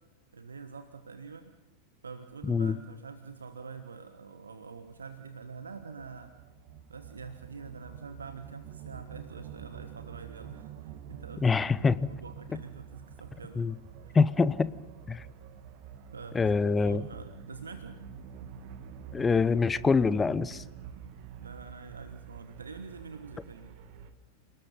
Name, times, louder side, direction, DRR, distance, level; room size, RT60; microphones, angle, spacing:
voice 1, 0.3-1.5 2.0-6.4 6.9-13.7 14.0-14.2 16.1-18.0 21.4-23.8, right 5 dB, 75° right, 9 dB, 1.2 m, -45 dB
voice 2, 2.4-2.7 11.4-12.1 13.6-13.8 14.1-14.7 15.1-15.2 16.3-17.0 19.1-20.6, left 4 dB, 15° left, 18 dB, 0.8 m, -25 dB
sound 1, 4.9-24.1, right 8 dB, 45° right, 1.8 m, -47 dB
29.5 x 19.5 x 5.5 m, 1.2 s
figure-of-eight pair, 90°, 0 cm